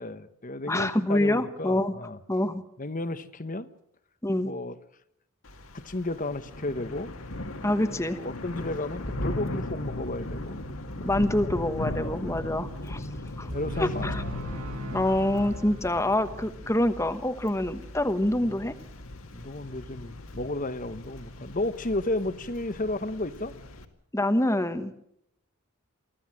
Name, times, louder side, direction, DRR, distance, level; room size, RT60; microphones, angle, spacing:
voice 1, 0.0-2.2 2.8-3.7 4.4-4.8 5.7-7.1 7.9-10.6 11.2-11.3 11.5-12.6 13.4-14.4 19.3-23.5, left 2 dB, 35° left, 12 dB, 1.1 m, -33 dB
voice 2, 0.7-1.9 2.3-2.6 4.2-4.5 7.6-8.2 11.0-13.1 13.4-13.5 13.8-14.2 14.9-18.7 24.1-25.1, left 1 dB, 15° left, 9 dB, 1.1 m, -26 dB
Thunder / Rain, 5.4-23.8, left 1 dB, 65° left, 2.2 m, -38 dB
sound 1, 13.5-16.4, equal, 85° right, 6.7 m, -39 dB
24.5 x 15.5 x 7.6 m, 0.75 s
head